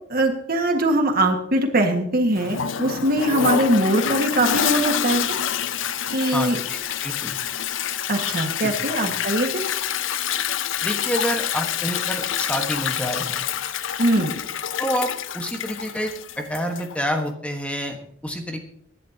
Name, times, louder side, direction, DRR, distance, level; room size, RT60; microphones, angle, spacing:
voice 1, 0.1-5.3 6.1-6.6 8.1-9.6 14.0-14.3, right 1 dB, 50° right, 4 dB, 1.8 m, -21 dB
Toilet flush, 2.4-17.0, left 9 dB, 75° left, 0.6 m, -27 dB
voice 2, 6.3-7.4 8.6-8.7 10.8-13.4 14.8-18.0 18.2-18.6, equal, 5° left, 4 dB, 1.4 m, -28 dB
23.5 x 11.0 x 2.9 m, 0.69 s
head